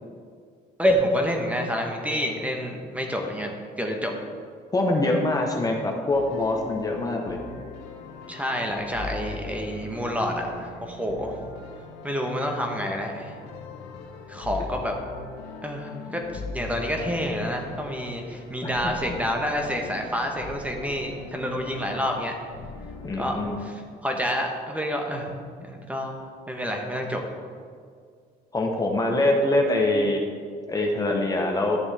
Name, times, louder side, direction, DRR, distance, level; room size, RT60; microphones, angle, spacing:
voice 1, 0.8-4.1 8.3-11.4 12.0-13.4 14.3-14.9 15.6-22.3 23.2-23.7 24.0-25.3 25.6-27.2, equal, 10° right, 2 dB, 1.0 m, -28 dB
voice 2, 4.7-7.4 18.6-18.7 23.0-23.5 28.5-30.2 30.7-31.8, left 2 dB, 20° left, 1 dB, 0.9 m, -24 dB
sound 1, 6.1-23.6, left 3 dB, 90° left, 1.0 m, -41 dB
11.0 x 6.9 x 3.4 m, 2.1 s
cardioid pair, 110°, 17 cm